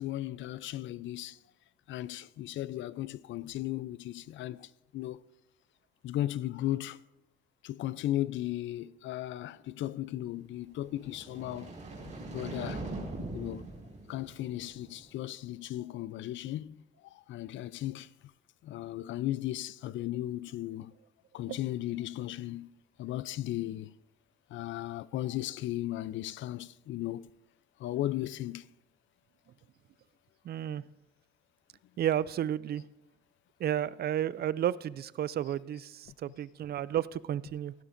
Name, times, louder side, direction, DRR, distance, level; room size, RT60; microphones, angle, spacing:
voice 1, 0.0-1.4 1.9-5.2 6.0-7.0 7.6-11.7 12.0-12.8 13.3-13.7 14.1-16.8 17.1-18.1 18.6-20.9 21.3-22.7 23.0-23.9 24.5-27.3 27.8-28.6, left 14 dB, 75° left, 0.4 m, -36 dB
sound 1, 10.8-15.1, right 2 dB, 40° right, 4.7 m, -42 dB
voice 2, 30.4-30.8 32.0-32.8 33.6-37.7, right 11 dB, 55° right, 0.4 m, -32 dB
15.5 x 12.0 x 2.6 m
cardioid pair, 85°, 20 cm